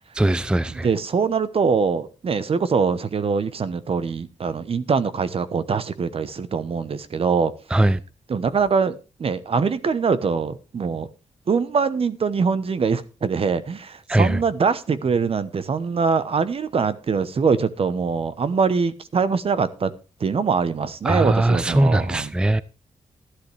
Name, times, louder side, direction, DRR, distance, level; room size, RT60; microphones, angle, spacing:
voice 1, 0.2-0.9 7.7-8.0 14.1-14.4 21.0-22.6, right 1 dB, 5° right, 0.5 m, -20 dB
voice 2, 0.7-7.5 8.3-11.1 11.5-19.9 20.2-22.3, right 5 dB, 50° right, 1.0 m, -23 dB
13.0 x 11.5 x 3.4 m
wide cardioid pair, 105°, 12 cm